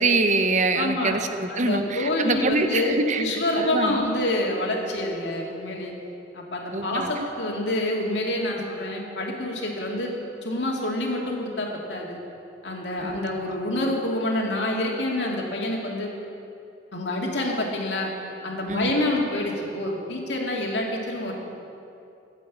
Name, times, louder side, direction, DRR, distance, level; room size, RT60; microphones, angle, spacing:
voice 1, 0.0-3.2 3.6-4.0 6.7-7.1 13.0-13.2 18.7-19.0, right 3 dB, 45° right, 8 dB, 0.9 m, -24 dB
voice 2, 0.7-1.2 1.5-5.9 6.3-10.1 10.4-12.2 12.6-16.1 16.9-18.1 18.4-21.3, left 1 dB, 75° left, -1 dB, 2.3 m, -27 dB
13.0 x 8.2 x 8.6 m, 2.7 s
head